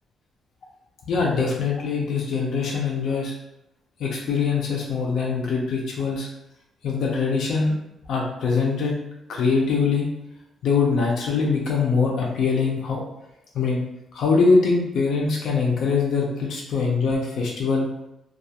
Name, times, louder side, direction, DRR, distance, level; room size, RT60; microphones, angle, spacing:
voice 1, 1.1-3.3 4.0-6.3 6.8-7.7 8.1-8.9 9.3-10.1 10.6-13.0 13.5-13.8 14.1-17.9, left 4 dB, 70° left, -2 dB, 0.5 m, -23 dB
2.3 x 2.3 x 2.8 m, 0.84 s
cardioid pair, 155°, 0 cm